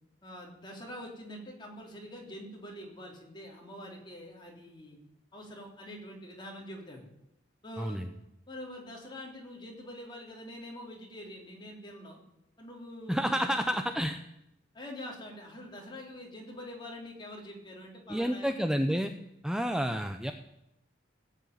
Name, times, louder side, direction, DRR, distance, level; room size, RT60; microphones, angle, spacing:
voice 1, 0.2-5.0 5.3-7.1 7.6-8.0 8.5-12.2 12.6-13.5 13.8-13.9 14.7-18.6, left 1 dB, 25° left, -1 dB, 3.4 m, -45 dB
voice 2, 7.8-8.1 13.1-14.2 18.1-19.1 19.4-20.3, equal, 5° right, 7 dB, 0.6 m, -29 dB
17.0 x 8.4 x 9.1 m, 0.84 s
head